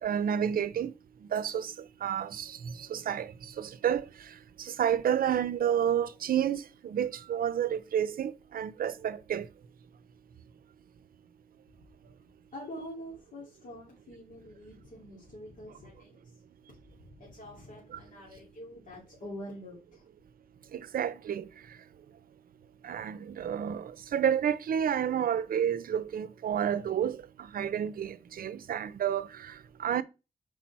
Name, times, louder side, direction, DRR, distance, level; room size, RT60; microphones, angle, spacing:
voice 1, 0.0-0.9 1.3-1.7 2.0-3.3 3.6-4.1 4.6-9.5 20.7-21.5 22.8-30.0, right 9 dB, 80° right, 0.5 m, -30 dB
voice 2, 12.5-16.2 17.0-20.0, equal, 60° left, 2.8 m, -45 dB
5.9 x 4.8 x 4.2 m
wide cardioid pair, 135°, 15 cm